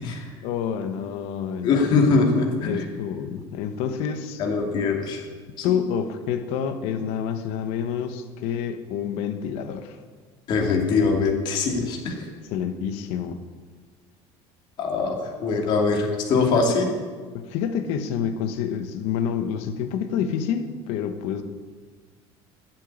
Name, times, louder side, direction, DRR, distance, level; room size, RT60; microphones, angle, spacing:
voice 1, 0.4-1.8 2.6-4.4 5.6-10.0 12.3-13.4 16.5-16.6 17.3-21.4, left 8 dB, 65° left, 8 dB, 1.2 m, -28 dB
voice 2, 1.6-2.8 4.4-5.3 5.6-5.8 10.5-12.3 14.8-16.9, left 4 dB, 45° left, 1 dB, 2.5 m, -22 dB
13.0 x 7.6 x 9.9 m, 1.5 s
cardioid pair, 175°, 11 cm